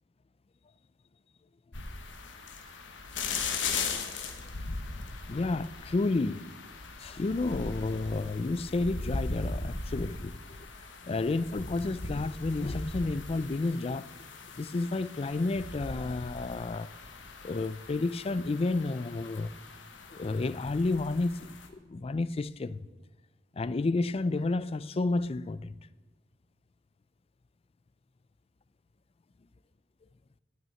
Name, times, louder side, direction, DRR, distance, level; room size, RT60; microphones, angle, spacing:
sound 1, 1.7-21.7, left 4 dB, 80° left, 1.4 m, -39 dB
voice 1, 5.3-6.5 7.0-10.7 11.0-14.1 14.6-16.9 17.4-19.5 20.1-22.8 23.5-25.7, left 3 dB, 30° left, 0.4 m, -31 dB
9.4 x 9.3 x 8.9 m
head